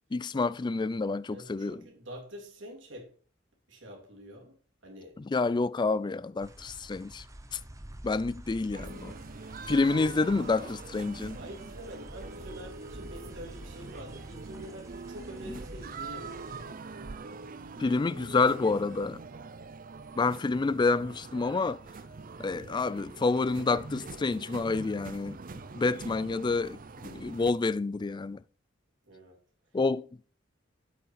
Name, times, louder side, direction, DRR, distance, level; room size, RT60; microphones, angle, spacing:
voice 1, 0.1-1.8 5.3-7.2 7.5-7.6 8.0-9.1 9.7-11.4 17.8-19.2 20.2-21.8 22.4-25.4 25.7-28.4 29.7-30.1, left 3 dB, 25° left, 0.3 m, -28 dB
voice 2, 1.3-3.1 3.7-4.6 4.8-5.2 9.6-10.3 11.4-16.5 25.6-25.8 29.1-29.4, equal, 70° right, 3.5 m, -46 dB
sound 1, 6.4-16.7, right 1 dB, 15° right, 0.8 m, -48 dB
sound 2, 8.7-27.5, right 4 dB, 45° right, 0.6 m, -44 dB
8.4 x 6.5 x 5.8 m
head